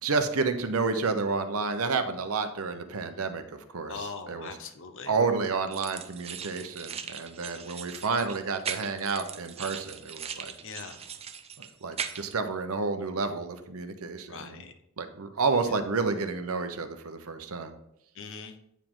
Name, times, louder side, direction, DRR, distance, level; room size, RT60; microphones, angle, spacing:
voice 1, 0.0-4.5 5.1-10.5 11.6-14.6 15.0-17.7, right 4 dB, 85° right, 8 dB, 0.8 m, -30 dB
voice 2, 3.9-5.2 10.6-11.0 14.3-14.7 18.1-18.5, left 5 dB, 65° left, 7 dB, 0.9 m, -41 dB
sound 1, 5.7-12.3, right 7 dB, 30° right, 0.5 m, -39 dB
9.1 x 5.0 x 3.7 m, 0.78 s
head